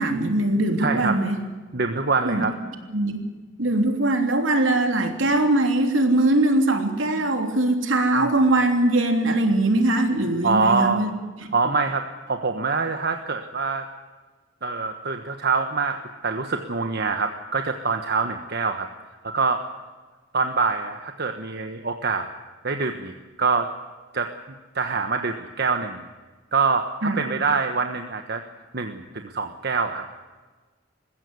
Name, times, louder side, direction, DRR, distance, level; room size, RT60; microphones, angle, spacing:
voice 1, 0.0-1.4 2.2-2.4 2.9-3.3 3.6-11.1 11.4-11.5 27.0-27.2, right 2 dB, 85° right, 5 dB, 3.2 m, -21 dB
voice 2, 0.8-1.2 1.7-2.5 10.4-11.1 11.5-13.9 14.6-18.9 19.2-19.6 20.3-22.3 22.6-23.1 23.4-23.7 24.1-24.3 24.7-26.0 26.5-28.4 28.7-30.0, right 4 dB, 55° right, 5 dB, 1.3 m, -25 dB
21.0 x 16.0 x 9.5 m, 1.3 s
head